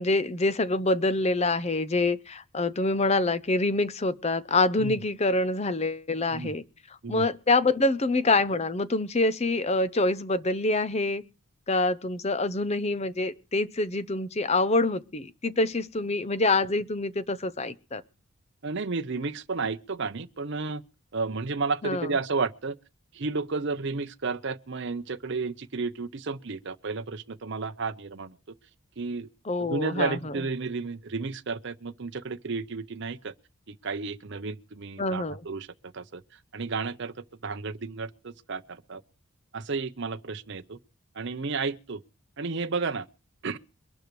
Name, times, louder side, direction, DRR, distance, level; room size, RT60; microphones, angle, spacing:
voice 1, 0.0-6.6 7.1-11.2 11.7-18.0 21.8-22.1 29.4-30.3 35.0-35.4, left 2 dB, 30° left, 0.6 m, -26 dB
voice 2, 18.6-20.8 21.1-22.7 23.1-28.3 29.0-29.3 29.7-33.3 33.7-35.7 35.9-36.2 36.5-37.1 37.4-39.0 39.5-40.8 41.2-42.0 42.4-43.1 43.4-43.6, right 4 dB, 55° right, 0.7 m, -32 dB
23.5 x 12.0 x 3.2 m
head